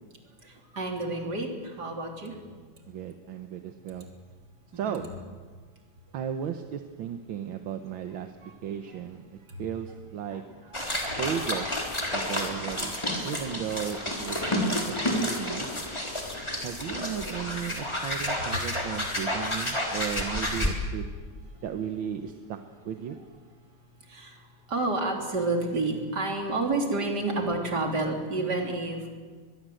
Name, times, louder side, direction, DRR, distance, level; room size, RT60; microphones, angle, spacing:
voice 1, 0.4-2.4 4.7-5.0 8.4-8.5 8.9-9.0 10.3-11.2 18.5-18.6 24.1-29.1, right 2 dB, 55° right, 2 dB, 3.8 m, -30 dB
voice 2, 2.9-4.1 4.8-5.1 6.1-8.3 8.6-10.4 11.2-11.7 12.1-13.0 13.2-15.7 16.6-21.0 21.6-23.2, right 9 dB, 75° right, 7 dB, 1.8 m, -35 dB
sound 1, 10.7-20.7, left 1 dB, 15° left, 3.6 m, -30 dB
23.5 x 21.0 x 7.8 m, 1.5 s
omnidirectional pair, 2.2 m